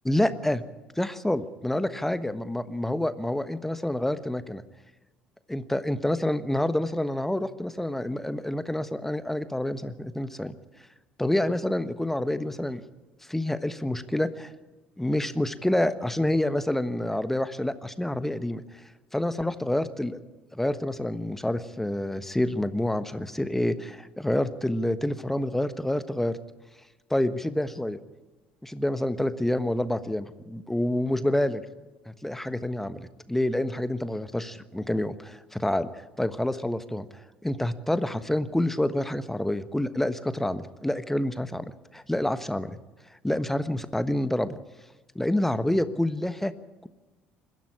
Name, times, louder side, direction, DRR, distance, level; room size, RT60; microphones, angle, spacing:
voice 1, 0.0-0.6 1.0-4.6 5.5-10.5 11.2-12.8 13.3-14.5 15.0-18.8 19.1-20.2 20.5-26.4 27.1-28.0 28.6-31.6 32.1-35.9 36.2-37.1 37.4-42.7 43.2-44.6 45.1-46.5, left 1 dB, 5° left, 13 dB, 1.3 m, -28 dB
21.5 x 15.0 x 9.9 m, 1.2 s
figure-of-eight pair, 55°, 5 cm